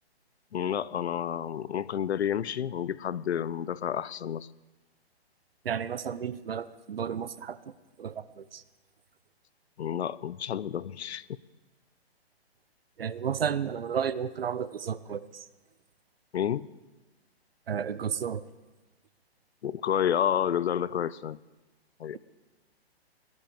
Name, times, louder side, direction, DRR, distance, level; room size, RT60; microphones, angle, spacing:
voice 1, 0.5-4.5 9.8-11.3 16.3-16.7 19.6-21.4 22.0-22.2, left 9 dB, 80° left, 20 dB, 0.6 m, -30 dB
voice 2, 5.6-7.7 8.0-8.6 13.0-15.4 17.7-18.4, right 7 dB, 65° right, 17 dB, 0.7 m, -32 dB
19.0 x 11.5 x 5.2 m, 1.2 s
hypercardioid pair, 180°, 32 cm